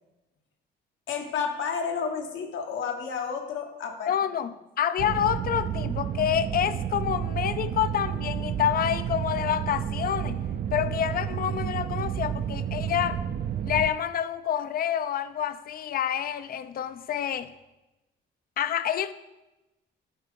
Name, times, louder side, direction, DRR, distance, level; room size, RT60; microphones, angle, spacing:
voice 1, 1.1-4.1 4.4-4.5, left 6 dB, 75° left, 4 dB, 1.1 m, -31 dB
voice 2, 4.1-10.4 10.7-13.2 13.6-17.5 18.6-19.1, left 9 dB, 50° left, 14 dB, 0.4 m, -28 dB
sound 1, 5.0-13.9, right 9 dB, 50° right, 0.5 m, -31 dB
8.8 x 3.7 x 5.2 m, 1.0 s
cardioid pair, 90°, 20 cm